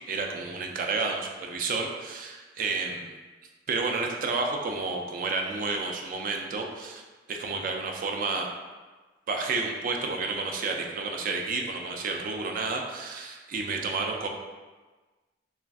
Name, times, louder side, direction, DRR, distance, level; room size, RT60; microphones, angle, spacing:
voice 1, 0.1-3.2 3.7-7.0 7.3-8.5 9.3-14.3, right 4 dB, 50° right, 2 dB, 0.3 m, -30 dB
2.4 x 2.3 x 3.4 m, 1.3 s
head